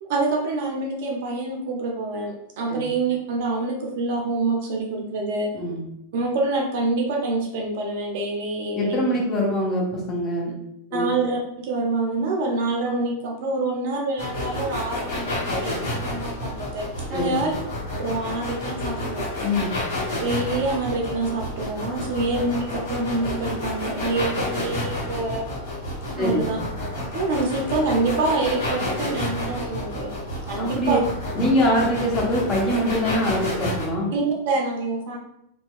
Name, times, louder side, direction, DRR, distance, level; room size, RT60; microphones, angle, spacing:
voice 1, 0.0-5.5 6.1-9.0 10.9-17.5 18.0-19.3 20.2-25.5 26.2-26.6 27.1-31.0 34.1-35.2, right 3 dB, 50° right, 0 dB, 0.5 m, -26 dB
voice 2, 8.7-10.5 10.9-11.1 17.1-17.4 19.4-19.7 26.2-26.5 30.6-31.0 31.3-34.1, equal, 25° left, -3 dB, 0.8 m, -23 dB
sound 1, 14.2-33.9, left 1 dB, 65° left, 1.0 m, -30 dB
2.8 x 2.2 x 2.4 m, 0.79 s
figure-of-eight pair, 90°, 0 cm